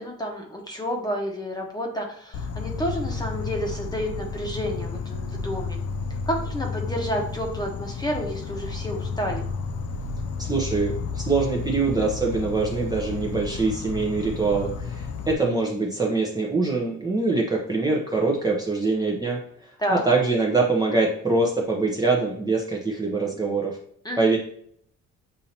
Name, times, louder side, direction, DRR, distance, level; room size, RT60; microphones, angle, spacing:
voice 1, 0.0-5.8 6.3-9.4 19.8-20.0 24.0-24.3, equal, 15° left, 1 dB, 1.1 m, -30 dB
Insect, 2.3-15.3, left 4 dB, 55° left, 0.5 m, -32 dB
voice 2, 10.4-23.8 24.2-24.4, right 3 dB, 15° right, -3 dB, 0.8 m, -24 dB
6.8 x 2.8 x 2.8 m, 0.64 s
cardioid pair, 90°, 30 cm